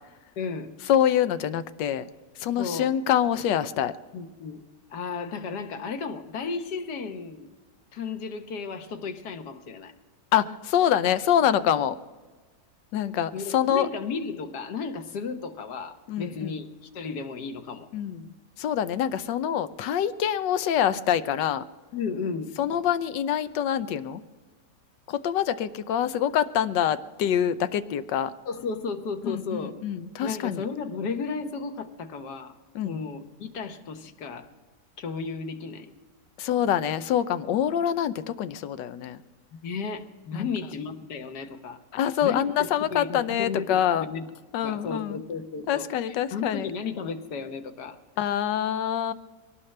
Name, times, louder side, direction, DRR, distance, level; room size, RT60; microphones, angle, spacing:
voice 1, 0.4-0.7 2.6-2.9 4.1-4.6 4.9-7.5 7.9-9.9 13.3-16.7 16.9-17.9 21.9-22.5 28.4-29.7 30.2-32.5 32.8-34.5 35.0-35.9 39.6-41.8 42.2-42.4 42.9-44.2 44.6-48.0, left 5 dB, 70° left, 8 dB, 1.6 m, -34 dB
voice 2, 0.9-2.1 2.4-3.9 10.3-12.0 12.9-13.9 16.1-16.5 17.9-18.3 18.6-21.6 22.6-24.2 25.1-28.3 29.2-30.6 32.7-33.0 36.4-39.2 40.3-40.5 41.9-44.1 44.5-45.2 45.7-46.7 48.2-49.1, left 10 dB, 90° left, 12 dB, 1.3 m, -25 dB
23.0 x 18.0 x 3.3 m, 1.3 s
omnidirectional pair, 1.8 m